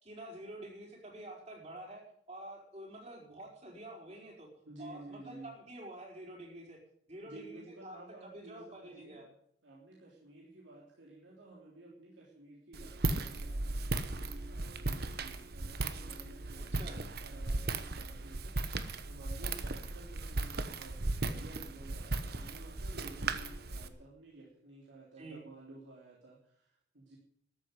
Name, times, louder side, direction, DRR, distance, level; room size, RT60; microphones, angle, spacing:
voice 1, 0.0-4.5 4.8-6.8 7.1-9.2 16.6-17.0 25.2-25.4, right 1 dB, 35° right, -1 dB, 5.1 m, -48 dB
voice 2, 4.6-5.5 7.2-9.2 9.6-27.2, right 2 dB, 75° right, -4 dB, 3.4 m, -53 dB
Walk footsteps, 12.7-23.9, right 2 dB, 55° right, 1.1 m, -37 dB
13.5 x 8.1 x 9.6 m, 0.68 s
head